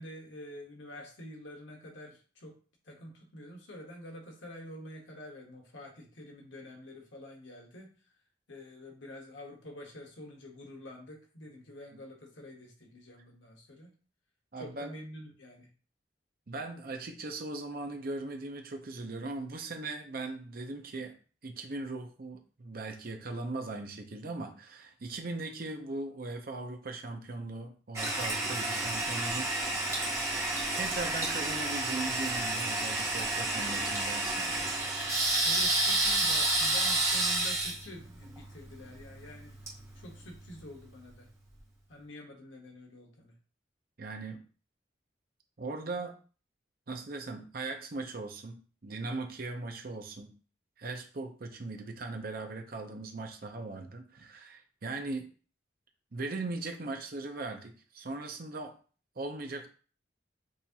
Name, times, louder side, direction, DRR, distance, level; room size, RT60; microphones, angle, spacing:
voice 1, 0.0-2.6 2.8-7.9 8.5-13.9 14.6-15.7 35.4-39.5 39.9-41.3 41.9-43.3, left 1 dB, 85° left, 0 dB, 1.2 m, -47 dB
voice 2, 14.5-14.9 16.5-21.2 21.4-30.0 30.7-34.7 44.0-44.4 45.6-46.2 46.9-50.3 50.8-55.3 56.1-58.8 59.2-59.7, right 3 dB, 50° right, 5 dB, 0.7 m, -39 dB
Toilet flush, 27.9-40.6, right 2 dB, 15° right, 0.9 m, -30 dB
6.3 x 2.6 x 2.8 m, 0.39 s
head